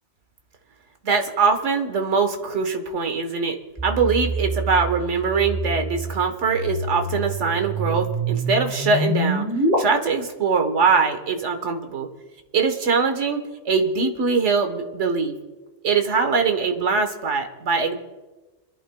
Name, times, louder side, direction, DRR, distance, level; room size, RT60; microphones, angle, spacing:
voice 1, 1.0-3.6 3.8-9.5 9.8-12.1 12.5-15.4 15.8-17.9, right 5 dB, 75° right, 5 dB, 1.5 m, -22 dB
sound 1, 3.8-9.8, right 2 dB, 15° right, 3.5 m, -26 dB
30.0 x 11.5 x 2.3 m, 1.2 s
omnidirectional pair, 1.2 m